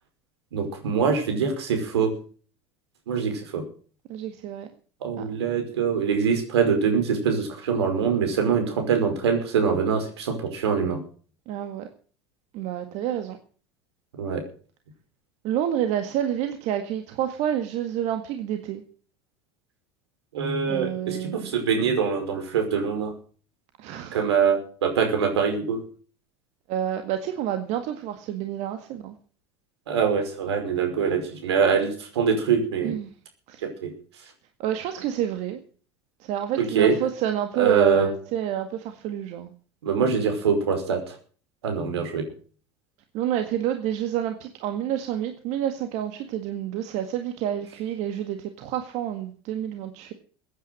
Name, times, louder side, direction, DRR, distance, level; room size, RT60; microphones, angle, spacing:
voice 1, 0.5-2.1 3.1-3.6 5.0-11.0 14.2-14.4 20.3-23.1 24.1-25.8 29.9-32.9 33.6-33.9 36.6-36.9 37.6-38.1 39.8-41.1 41.6-42.2, right 6 dB, 80° right, 5 dB, 5.1 m, -24 dB
voice 2, 4.1-4.7 5.2-5.3 11.5-11.9 12.5-13.4 15.4-18.8 20.6-21.5 23.8-24.2 26.7-29.2 32.8-33.1 33.5-33.6 34.6-35.6 36.2-39.5 43.1-50.1, right 10 dB, 55° right, 6 dB, 1.9 m, -29 dB
16.0 x 9.5 x 7.7 m, 0.42 s
hypercardioid pair, 85°, 14 cm